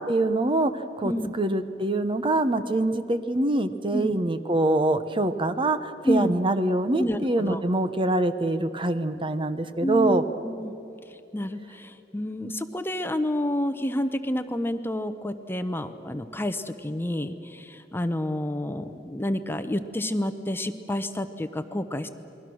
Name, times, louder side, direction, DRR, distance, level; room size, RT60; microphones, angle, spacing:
voice 1, 0.0-10.2, right 2 dB, 30° right, 10 dB, 0.9 m, -24 dB
voice 2, 1.0-1.3 3.9-4.1 6.0-6.3 7.0-7.6 9.8-10.7 11.3-22.1, left 1 dB, 15° left, 9 dB, 0.8 m, -29 dB
28.0 x 21.5 x 6.3 m, 2.9 s
head